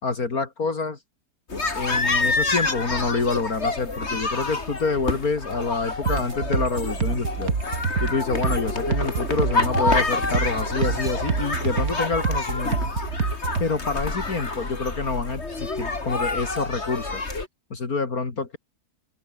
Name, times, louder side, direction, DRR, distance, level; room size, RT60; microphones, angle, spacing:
voice 1, 0.0-1.0 1.7-7.5 8.0-12.8 13.6-17.2 17.7-18.6, left 4 dB, 65° left, 3.2 m, -27 dB
sound 1, 1.5-17.5, left 3 dB, 45° left, 3.3 m, -28 dB
sound 2, 6.0-13.7, right 5 dB, 65° right, 2.6 m, -27 dB
open air
omnidirectional pair, 1.7 m